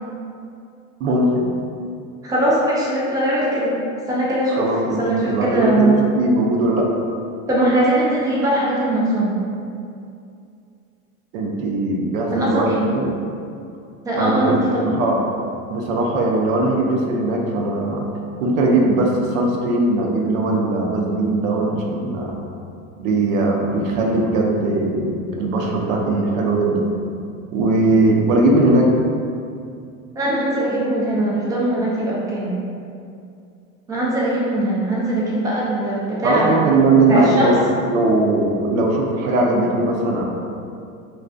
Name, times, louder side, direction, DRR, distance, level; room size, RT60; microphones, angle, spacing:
voice 1, 1.0-1.5 4.5-5.0 5.3-6.9 11.3-13.1 14.2-14.5 14.9-15.2 15.7-18.0 18.4-22.4 23.0-26.9 27.5-28.9 36.2-37.6 37.9-40.2, right 2 dB, 70° right, -1 dB, 0.6 m, -19 dB
voice 2, 2.2-3.7 4.1-4.7 5.0-6.0 7.5-9.3 12.3-12.9 14.0-14.9 30.2-32.5 33.9-36.6 37.1-37.5, right 1 dB, 10° right, -6 dB, 0.3 m, -20 dB
2.5 x 2.3 x 2.3 m, 2.5 s
hypercardioid pair, 100°, 42 cm